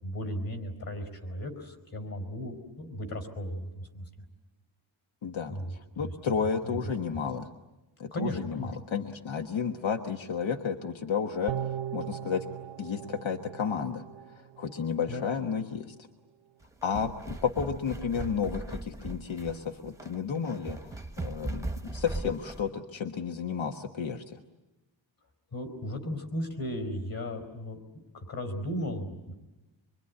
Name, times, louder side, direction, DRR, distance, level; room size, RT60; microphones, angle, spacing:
voice 1, 0.0-4.0 5.5-6.1 6.6-6.8 8.1-8.7 15.1-15.2 25.5-27.8 28.1-29.3, equal, 50° left, 6 dB, 4.8 m, -36 dB
voice 2, 5.2-7.5 8.0-12.5 12.8-15.9 16.8-24.4, left 6 dB, 90° left, 5 dB, 1.4 m, -32 dB
sound 1, 11.5-14.8 15.2-15.3, right 10 dB, 80° right, 0.8 m, -38 dB
sound 2, 16.6-22.7, right 2 dB, 5° right, 0.8 m, -39 dB
25.5 x 24.0 x 9.7 m, 1.1 s
wide cardioid pair, 150°, 45 cm